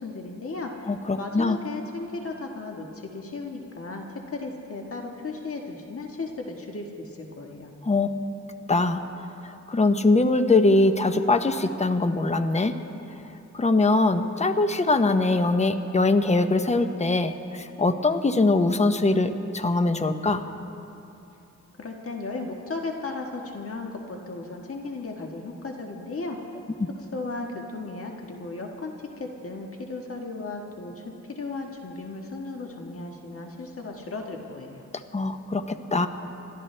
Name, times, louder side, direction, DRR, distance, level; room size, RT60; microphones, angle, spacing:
voice 1, 0.0-7.7 21.8-26.4 27.1-34.8, left 3 dB, 50° left, 1 dB, 1.5 m, -35 dB
voice 2, 0.9-1.6 7.9-8.1 8.7-9.0 9.7-12.7 13.5-20.4 35.1-36.1, left 2 dB, 25° left, 8 dB, 0.8 m, -22 dB
29.5 x 12.5 x 3.3 m, 2.8 s
cardioid pair, 90°, 30 cm